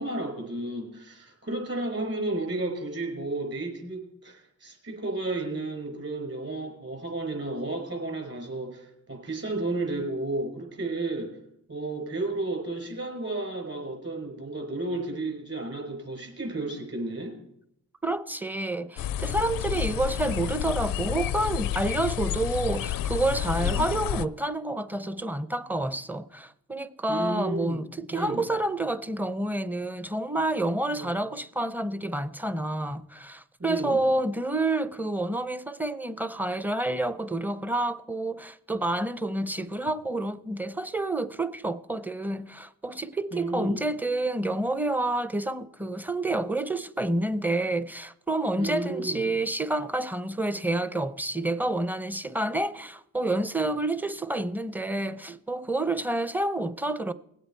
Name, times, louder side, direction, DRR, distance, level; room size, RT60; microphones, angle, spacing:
voice 1, 0.0-11.4 11.7-17.4 23.6-23.9 27.1-27.8 28.1-28.4 30.9-31.1 33.6-34.0 43.3-43.8 48.6-49.3, right 2 dB, 45° right, 5.2 m, -32 dB
voice 2, 18.0-57.1, right 2 dB, 5° right, 0.6 m, -29 dB
sound 1, 19.0-24.3, left 11 dB, 70° left, 0.5 m, -30 dB
19.0 x 8.1 x 4.5 m
supercardioid pair, 50°, 35 cm